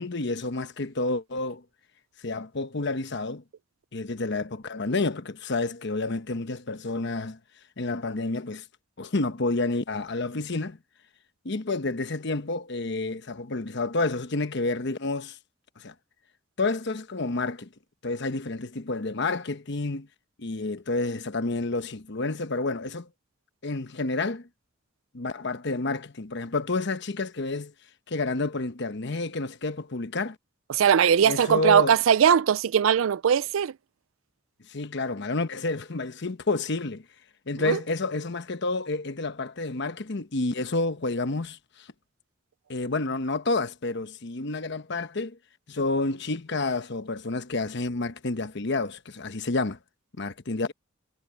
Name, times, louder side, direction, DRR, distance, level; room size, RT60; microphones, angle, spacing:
voice 1, 0.0-1.6 2.2-3.4 3.9-7.4 7.8-8.6 9.0-10.8 11.4-15.4 15.8-15.9 16.6-17.7 18.0-20.1 20.4-23.1 23.6-24.5 25.1-27.7 28.1-30.4 31.2-32.0 34.7-37.0 37.5-41.9 42.7-45.4 45.7-49.8 50.2-50.7, left 3 dB, 60° left, 1.0 m, -29 dB
voice 2, 30.7-33.7 37.6-37.8, right 8 dB, 90° right, 0.4 m, -20 dB
head